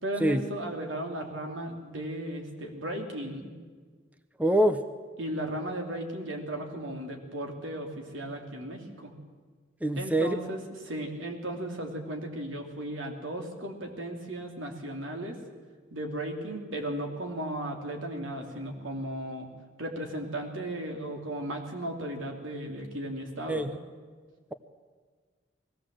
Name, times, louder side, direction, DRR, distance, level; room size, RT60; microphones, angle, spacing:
voice 1, 0.0-3.5 5.2-9.1 10.0-10.6 10.8-15.4 15.9-19.5 19.8-23.7, right 1 dB, 90° right, 2 dB, 3.1 m, -35 dB
voice 2, 4.4-4.8 9.8-10.4 23.5-23.7, right 1 dB, 10° right, 9 dB, 0.7 m, -24 dB
21.0 x 16.5 x 7.7 m, 1.5 s
head